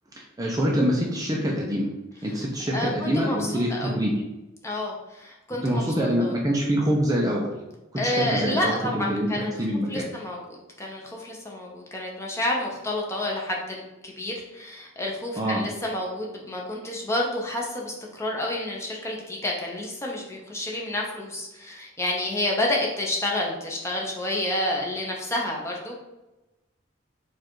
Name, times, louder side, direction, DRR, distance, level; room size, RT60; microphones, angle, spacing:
voice 1, 0.2-1.9 2.2-4.2 5.6-7.5 8.0-10.1 15.4-15.6, equal, 15° right, -2 dB, 0.5 m, -25 dB
voice 2, 2.7-4.0 4.6-6.3 8.0-9.6 9.9-25.9, left 1 dB, 15° left, -2 dB, 0.7 m, -29 dB
4.6 x 2.5 x 4.5 m, 1.0 s
head